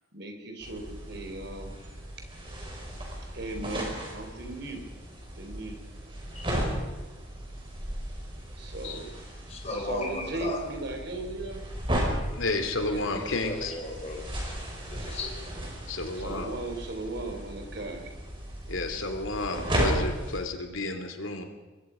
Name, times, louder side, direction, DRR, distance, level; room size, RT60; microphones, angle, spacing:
voice 1, 0.1-1.7 3.3-4.8 5.4-5.8 8.6-9.1 9.7-11.6 12.9-13.3 16.2-18.1, right 2 dB, 60° right, 5 dB, 3.7 m, -37 dB
sound 1, 0.6-20.4, equal, 25° right, 5.3 m, -35 dB
voice 2, 9.5-10.6 13.3-14.5 14.9-15.3, left 2 dB, 35° left, 0 dB, 3.4 m, -36 dB
voice 3, 12.3-13.7 15.9-16.6 18.7-21.4, left 2 dB, 85° left, 6 dB, 2.9 m, -31 dB
24.5 x 22.0 x 5.1 m, 1.2 s
head